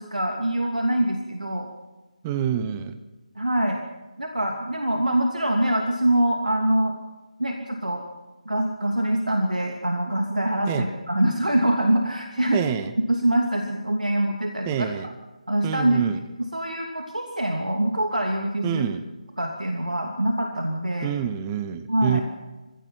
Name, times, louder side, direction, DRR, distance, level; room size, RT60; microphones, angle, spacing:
voice 1, 0.0-1.7 3.4-3.8 4.2-7.0 7.4-8.0 8.4-12.7 13.1-14.9 15.5-16.0 16.5-18.8 19.4-21.1 21.9-22.2, right 1 dB, 75° right, 2 dB, 2.7 m, -24 dB
voice 2, 2.2-3.0 10.7-10.9 12.5-12.9 14.7-15.1 15.6-16.2 18.6-19.0 21.0-22.2, right 9 dB, 15° right, 12 dB, 0.8 m, -27 dB
29.0 x 16.0 x 6.0 m, 1.2 s
figure-of-eight pair, 155°, 4 cm